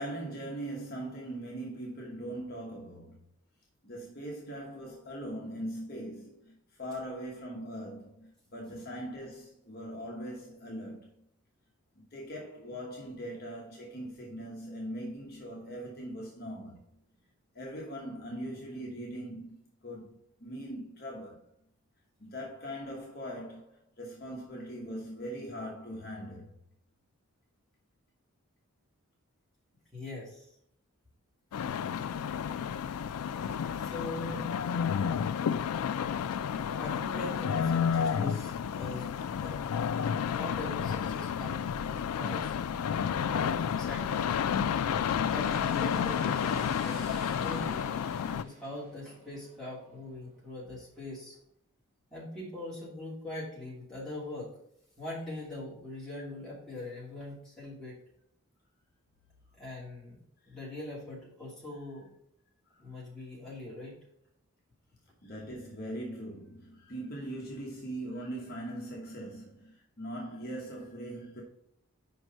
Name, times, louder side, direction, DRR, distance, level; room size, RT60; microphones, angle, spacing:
voice 1, 0.0-3.2 3.8-11.1 12.1-16.8 17.5-19.6 19.8-21.4 22.2-26.5 62.7-62.9 65.2-71.4, right 1 dB, 45° left, 1.2 m, -41 dB
voice 2, 29.9-30.5 33.3-34.8 36.8-39.1 39.4-39.6 40.2-42.5 43.3-44.4 45.3-47.8 48.4-51.4 52.1-54.5 55.0-58.0 59.5-60.2 60.5-62.1 62.8-64.0, left 2 dB, 5° left, 2.5 m, -42 dB
sound 1, 31.5-48.4, left 7 dB, 85° left, 0.3 m, -31 dB
sound 2, 42.8-50.4, equal, 30° right, 1.7 m, -49 dB
5.4 x 4.7 x 5.1 m
head